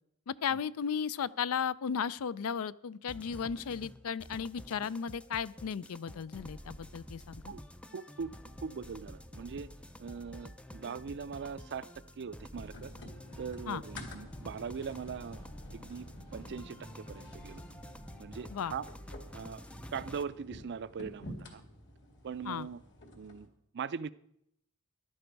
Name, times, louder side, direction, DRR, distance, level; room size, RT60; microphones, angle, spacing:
voice 1, 0.3-7.5 13.7-13.8 18.5-18.7 22.5-22.7, left 7 dB, 70° left, 18 dB, 0.4 m, -35 dB
sound 1, 3.1-20.2, left 1 dB, 5° left, 0.4 m, -49 dB
voice 2, 7.9-9.7 10.0-11.9 12.2-12.9 13.4-15.5 15.7-17.6 18.2-18.9 19.3-19.6 19.9-21.6 22.2-22.8 23.1-23.5 23.7-24.1, right 6 dB, 50° right, 16 dB, 0.4 m, -41 dB
sound 2, 12.5-23.5, left 1 dB, 55° left, 2.1 m, -50 dB
15.0 x 11.0 x 4.6 m, 0.75 s
head